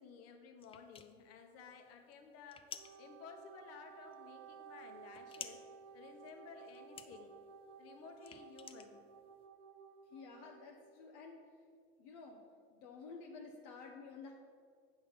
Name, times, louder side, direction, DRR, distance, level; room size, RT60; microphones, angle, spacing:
voice 1, 0.0-2.6 3.0-5.6 5.9-7.3 7.8-9.0, left 5 dB, 50° left, 4 dB, 1.3 m, -55 dB
sound 1, 0.6-9.5, left 7 dB, 20° left, 0.4 m, -54 dB
Wind instrument woodwind instrument, 2.6-10.7, right 6 dB, 85° right, 0.9 m, -56 dB
voice 2, 10.1-11.4 12.0-12.4 12.7-14.3, left 4 dB, 65° left, 0 dB, 1.0 m, -51 dB
8.1 x 6.2 x 5.2 m, 2.1 s
supercardioid pair, 110°, 31 cm